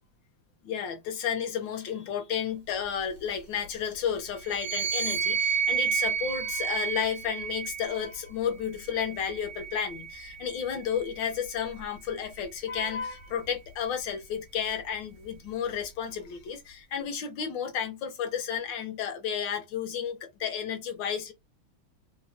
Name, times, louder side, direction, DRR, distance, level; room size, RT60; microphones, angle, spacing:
voice 1, 0.6-21.3, left 8 dB, 75° left, 1.3 m, -32 dB
sound 1, 4.4-8.0 8.9-10.5, right 7 dB, 85° right, 1.4 m, -31 dB
3.3 x 2.1 x 2.5 m
omnidirectional pair, 2.2 m